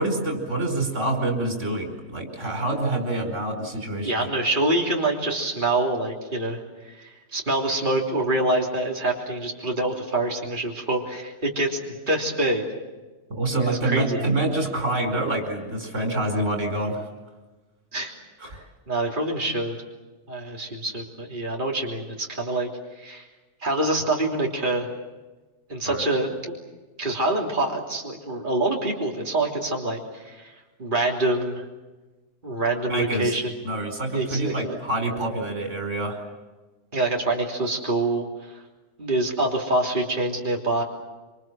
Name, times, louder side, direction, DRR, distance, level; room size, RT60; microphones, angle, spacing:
voice 1, 0.0-4.1 13.3-17.1 18.4-18.6 25.9-26.0 32.9-33.4 33.6-36.2, right 2 dB, 80° right, 4 dB, 5.3 m, -26 dB
voice 2, 4.0-12.6 13.6-14.3 17.9-18.1 18.5-18.6 18.9-19.8 20.3-23.3 23.6-24.9 25.7-26.5 27.0-31.7 32.4-33.6 34.1-34.8 36.9-38.6 39.0-40.8, right 2 dB, 40° right, 0 dB, 3.4 m, -26 dB
26.5 x 26.5 x 7.6 m, 1.2 s
omnidirectional pair, 1.2 m